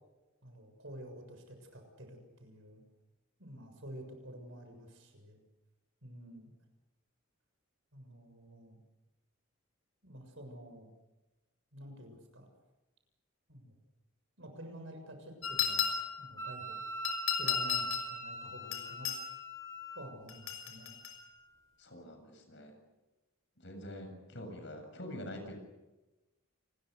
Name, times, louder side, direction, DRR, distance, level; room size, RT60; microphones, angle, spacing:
voice 1, 0.4-2.8 3.4-5.4 6.0-6.5 7.9-8.8 10.0-10.9 11.7-12.5 13.5-13.7 14.4-16.8 17.3-19.1 19.9-20.9, equal, 65° right, 5 dB, 7.0 m, -50 dB
sound 1, 15.4-16.3 17.0-18.1 18.7-19.2 20.3-21.2, left 9 dB, 80° left, 6.0 m, -34 dB
Wind instrument woodwind instrument, 16.4-20.1, right 1 dB, 15° left, 2.8 m, -41 dB
voice 2, 21.8-22.7 23.6-25.6, left 1 dB, 55° left, 5 dB, 7.5 m, -45 dB
29.0 x 21.5 x 6.7 m, 1.1 s
head